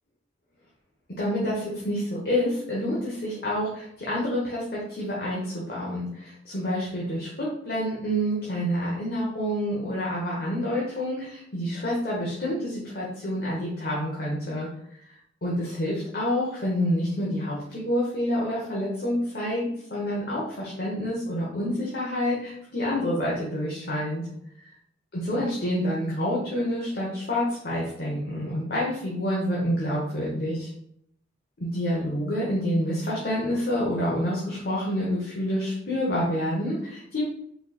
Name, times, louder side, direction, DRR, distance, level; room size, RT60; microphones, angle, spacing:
voice 1, 1.2-14.7 15.4-24.3 25.1-30.7 31.6-37.2, equal, 55° left, -6 dB, 1.1 m, -28 dB
4.7 x 4.2 x 2.4 m, 0.72 s
head